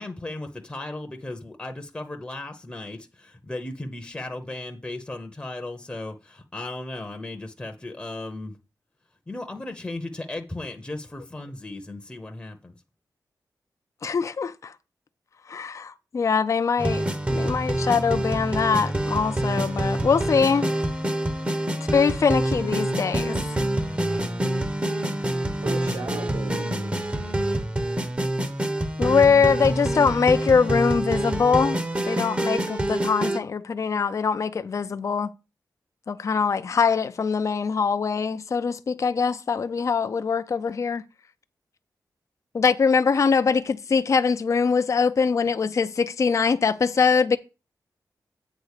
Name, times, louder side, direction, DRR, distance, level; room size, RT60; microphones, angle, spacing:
voice 1, 0.0-8.6 9.3-12.8, left 2 dB, 15° left, 0.8 m, -36 dB
voice 2, 14.0-14.7 15.5-20.7 21.9-23.4 29.0-31.8 32.1-35.3 36.1-41.0 42.5-47.4, left 5 dB, 45° left, 0.5 m, -22 dB
sound 1, 16.8-33.4, right 1 dB, 20° right, 0.8 m, -26 dB
voice 3, 25.1-27.0 43.5-43.6, right 4 dB, 65° right, 1.5 m, -37 dB
8.3 x 3.8 x 6.6 m
wide cardioid pair, 125°, 7 cm